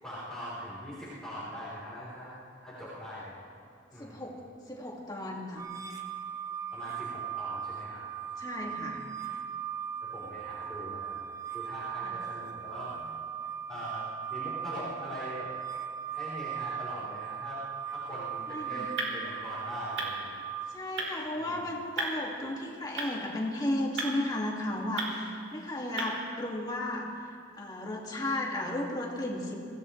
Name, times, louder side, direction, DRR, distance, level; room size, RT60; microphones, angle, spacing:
voice 1, 0.0-2.3 2.6-3.4 3.9-4.3 6.7-8.7 9.2-9.3 10.0-11.2 11.5-13.3 13.7-15.5 16.1-17.6 17.9-20.5 21.4-21.7, equal, 5° left, -11 dB, 3.9 m, -42 dB
voice 2, 4.0-4.3 4.7-5.7 8.4-9.0 12.0-12.2 18.5-18.9 20.7-27.3 27.6-29.5, left 1 dB, 20° left, -2 dB, 2.3 m, -34 dB
sound 1, 5.6-20.7, right 8 dB, 20° right, 1.3 m, -38 dB
sound 2, 18.2-26.3, right 2 dB, 70° right, 3.3 m, -39 dB
24.5 x 17.0 x 3.3 m, 2.5 s
head